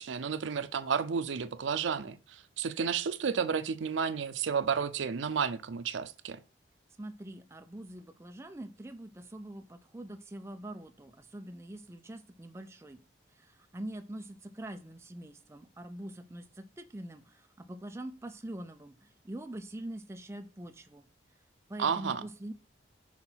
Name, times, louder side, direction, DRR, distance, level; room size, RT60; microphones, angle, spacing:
voice 1, 0.0-6.4 21.8-22.2, right 6 dB, 80° right, 0.5 m, -32 dB
voice 2, 7.0-13.0 13.3-21.1 21.7-22.5, right 1 dB, 15° right, 0.4 m, -44 dB
5.8 x 3.8 x 4.4 m
head